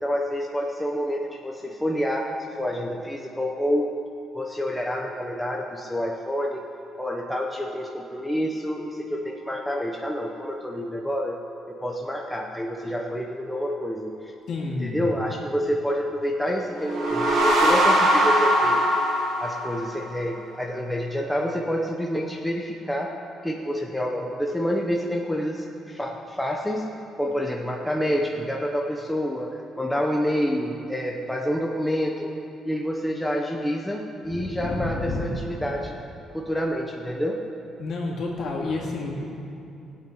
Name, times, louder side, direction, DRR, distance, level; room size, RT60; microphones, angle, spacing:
voice 1, 0.0-2.3 2.6-3.9 4.3-6.6 7.0-11.3 11.7-14.3 14.8-18.8 19.4-23.1 23.4-32.3 32.6-35.9 36.3-37.4, equal, ahead, -1 dB, 0.7 m, -28 dB
voice 2, 14.5-15.1 34.3-35.3 37.8-39.3, left 2 dB, 50° left, -2 dB, 2.6 m, -30 dB
sound 1, 16.7-20.2, right 1 dB, 65° right, 3.0 m, -21 dB
19.5 x 8.5 x 5.5 m, 2.7 s
cardioid pair, 175°, 0 cm